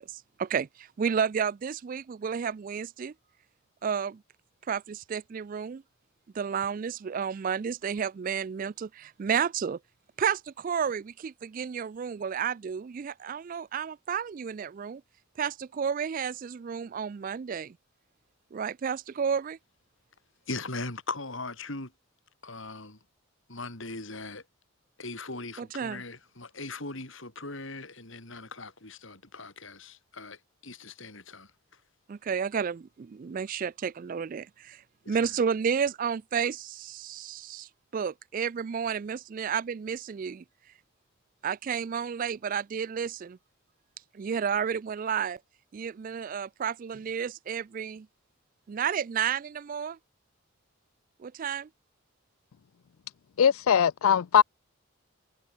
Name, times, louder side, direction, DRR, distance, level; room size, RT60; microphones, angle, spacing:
voice 1, 0.0-3.1 3.8-4.2 4.7-5.8 6.3-9.8 10.2-15.0 15.4-17.8 18.5-19.6 25.6-26.0 32.1-40.4 41.4-43.4 44.1-45.4 45.7-48.1 48.7-50.0 51.2-51.7, right 7 dB, 40° right, 0.3 m, -31 dB
voice 2, 20.5-21.9 22.4-23.0 23.5-24.4 25.0-31.5 35.0-35.2, left 3 dB, 60° left, 4.4 m, -39 dB
voice 3, 53.4-54.4, left 8 dB, 80° left, 0.4 m, -21 dB
head